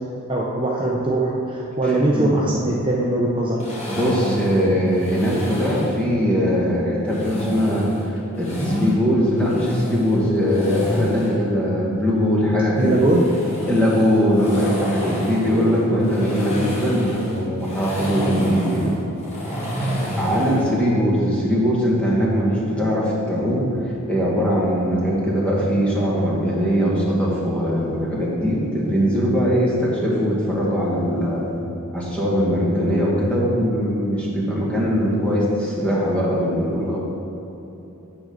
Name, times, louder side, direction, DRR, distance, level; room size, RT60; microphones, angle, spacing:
voice 1, 0.3-3.6 12.8-13.2 15.9-16.1, right 2 dB, 20° right, -4 dB, 0.7 m, -21 dB
voice 2, 1.8-2.4 3.9-13.0 13.7-18.9 20.2-31.5 31.9-37.0, equal, 5° left, -6 dB, 1.7 m, -21 dB
sound 1, 3.6-6.0 7.1-8.9 9.4-11.4 12.8-20.7, equal, 30° left, 1.8 m, -29 dB
9.5 x 3.8 x 6.6 m, 3.0 s
head